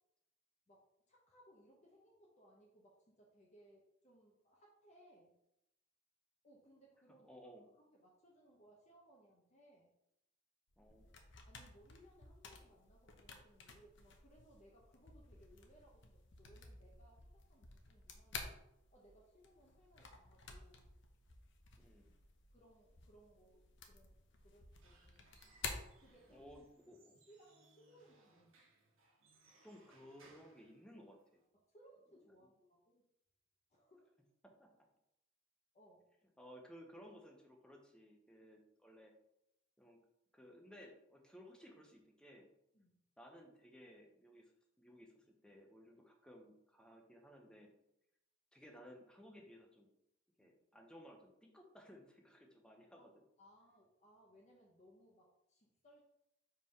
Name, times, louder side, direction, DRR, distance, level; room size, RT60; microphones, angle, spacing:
voice 1, 0.7-5.3 6.4-7.3 7.7-9.9 11.4-18.6 18.9-20.9 22.5-24.1 24.4-25.3 26.0-26.4 27.3-28.7 31.5-33.0 33.7-34.1 35.7-36.1 38.4-38.5 42.7-43.0 50.4-50.5 52.9-53.1 53.4-56.0, equal, 35° left, -2 dB, 0.9 m, -66 dB
voice 2, 7.2-7.7 10.8-11.1 21.8-22.1 26.3-27.2 29.6-31.4 34.4-34.7 36.4-39.1 39.8-40.0 40.3-42.5 43.2-44.5 44.8-47.7 48.5-49.9 50.4-53.1, equal, 5° left, 1 dB, 0.9 m, -58 dB
sound 1, 10.7-26.7, left 4 dB, 60° left, 0.9 m, -53 dB
Squeak / Wood, 24.5-31.5, right 3 dB, 80° right, 1.4 m, -69 dB
4.8 x 3.8 x 5.5 m, 0.82 s
head